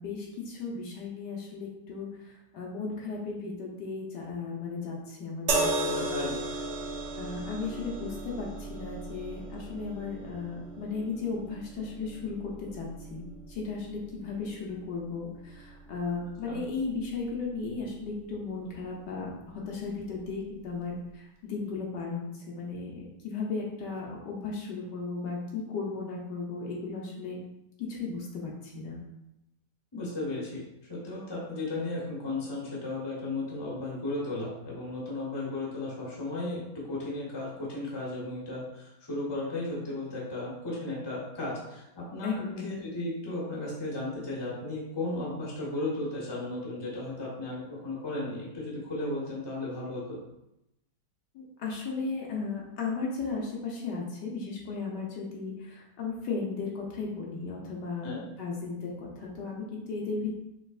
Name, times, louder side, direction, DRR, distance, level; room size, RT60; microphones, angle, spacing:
voice 1, 0.0-6.1 7.2-27.4 27.8-29.0 42.2-42.9 51.3-58.1 58.4-60.4, left 4 dB, 70° left, -2 dB, 1.4 m, -35 dB
sound 1, 5.5-18.8 19.8-19.9, right 2 dB, 55° right, 0.8 m, -37 dB
voice 2, 5.9-6.4 16.4-16.6 29.9-50.2 58.0-58.2, left 2 dB, 15° left, -5 dB, 1.0 m, -35 dB
5.3 x 3.4 x 2.4 m, 0.87 s
omnidirectional pair, 1.9 m